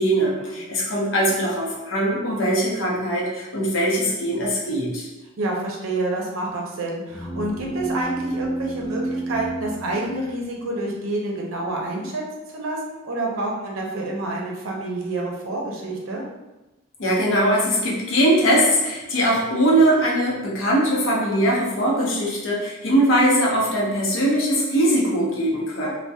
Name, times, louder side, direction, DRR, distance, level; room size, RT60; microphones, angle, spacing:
voice 1, 0.0-5.1 17.0-25.9, right 1 dB, 65° left, -4 dB, 0.7 m, -21 dB
voice 2, 5.4-12.2 12.5-12.8 13.0-16.2 25.8-25.9, right 2 dB, 80° right, -1 dB, 0.6 m, -28 dB
sound 1, 7.1-10.8, right 2 dB, 10° left, 0.5 m, -30 dB
2.6 x 2.2 x 2.2 m, 1.0 s
head